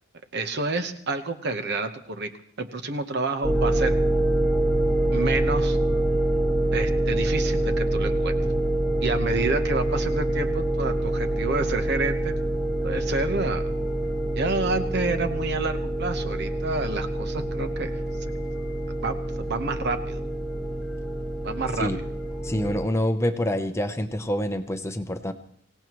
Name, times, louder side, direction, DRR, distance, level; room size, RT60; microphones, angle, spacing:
voice 1, 0.3-2.3 2.6-4.0 5.1-5.8 6.7-8.3 9.0-12.3 12.8-13.7 14.3-17.9 19.0-20.2 21.4-21.9, right 3 dB, 50° right, 7 dB, 1.1 m, -29 dB
sound 1, 3.4-22.9, right 1 dB, 5° right, 1.4 m, -26 dB
voice 2, 22.4-25.3, left 1 dB, 15° left, 7 dB, 0.7 m, -26 dB
25.0 x 17.0 x 3.1 m, 0.66 s
head